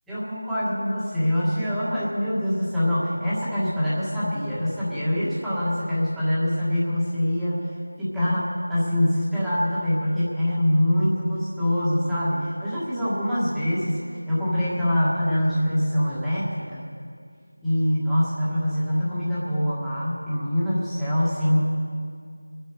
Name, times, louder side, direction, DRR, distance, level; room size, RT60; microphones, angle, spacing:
voice 1, 0.1-16.8 17.6-21.6, equal, ahead, -12 dB, 1.7 m, -24 dB
23.0 x 9.7 x 4.7 m, 2.2 s
figure-of-eight pair, 175°, 0 cm